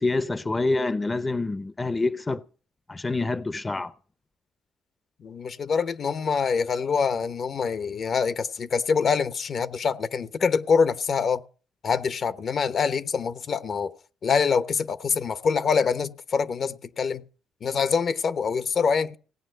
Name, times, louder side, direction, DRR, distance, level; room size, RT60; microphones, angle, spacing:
voice 1, 0.0-2.4 2.9-3.9, left 3 dB, 20° left, 0.7 m, -26 dB
voice 2, 5.2-11.4 11.8-13.9 14.2-17.2 17.6-19.2, left 5 dB, 50° left, 0.9 m, -25 dB
17.0 x 8.9 x 7.8 m
cardioid pair, 90°, 0 cm